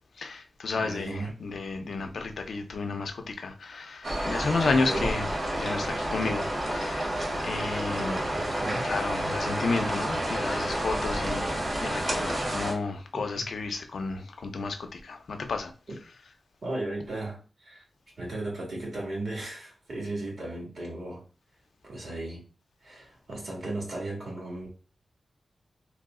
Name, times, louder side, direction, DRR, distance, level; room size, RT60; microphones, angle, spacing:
voice 1, 0.2-5.3 5.5-7.1 7.4-8.1 8.8-15.7, left 4 dB, 85° left, 0.5 m, -32 dB
voice 2, 0.7-1.4 4.7-5.1 8.0-8.9 12.4-12.5 13.1-13.5 16.6-17.8 18.2-21.2 21.8-22.4 22.8-24.7, right 2 dB, 65° right, 1.6 m, -36 dB
sound 1, 4.0-12.7, right 1 dB, 45° right, 1.2 m, -30 dB
2.9 x 2.0 x 3.6 m
wide cardioid pair, 105°, 0 cm